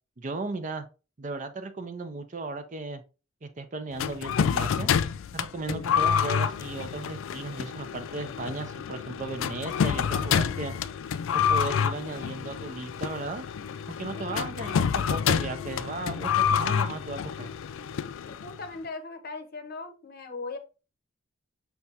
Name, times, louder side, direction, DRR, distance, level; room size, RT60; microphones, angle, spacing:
voice 1, 0.2-0.9 1.2-3.0 3.4-4.9 5.3-10.7 11.3-13.5 13.9-17.5, right 3 dB, 35° right, 0.5 m, -36 dB
sound 1, 4.0-18.7, left 7 dB, 70° left, 0.3 m, -28 dB
voice 2, 18.3-20.6, left 3 dB, 45° left, 0.7 m, -39 dB
5.8 x 3.3 x 2.7 m
head